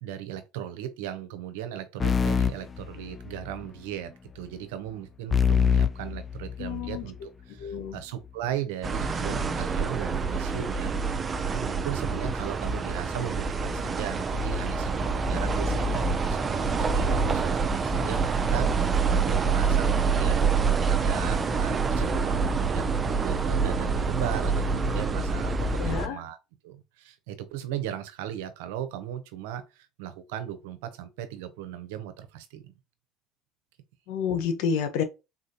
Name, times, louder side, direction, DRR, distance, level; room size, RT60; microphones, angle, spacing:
voice 1, 0.0-20.5 20.9-26.4 26.6-32.7, right 11 dB, 80° right, 0.6 m, -37 dB
sound 1, 2.0-3.6 5.3-7.1, left 7 dB, 25° left, 0.3 m, -25 dB
voice 2, 6.6-7.0 7.6-8.0 25.8-26.2 34.1-35.0, left 7 dB, 75° left, 0.8 m, -29 dB
sound 2, 8.8-26.1, right 4 dB, 30° right, 0.5 m, -26 dB
3.8 x 2.3 x 2.8 m
supercardioid pair, 85°, 0 cm